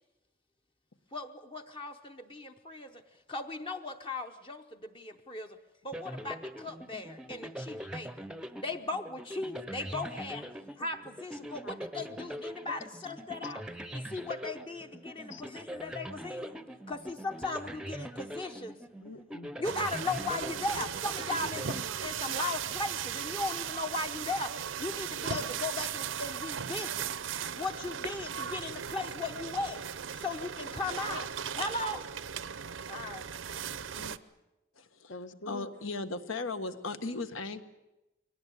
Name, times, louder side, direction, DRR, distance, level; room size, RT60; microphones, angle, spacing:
voice 1, 1.1-3.0 3.3-5.6 5.8-8.1 8.6-10.5 10.8-13.7 13.9-16.6 16.9-18.8 19.6-27.1 27.5-29.8 30.1-32.1 32.9-33.3, left 2 dB, 25° left, 6 dB, 0.8 m, -37 dB
sound 1, 5.9-22.5, equal, 5° right, 0.7 m, -43 dB
voice 2, 11.6-12.3 15.3-15.4 19.0-19.5 33.8-34.2 35.1-35.7, left 3 dB, 65° left, 10 dB, 1.3 m, -47 dB
sound 2, 19.6-34.2, right 8 dB, 75° right, 0.7 m, -37 dB
voice 3, 34.7-35.1 35.5-37.6, left 3 dB, 80° left, 9 dB, 1.6 m, -37 dB
23.0 x 18.0 x 9.4 m, 0.99 s
head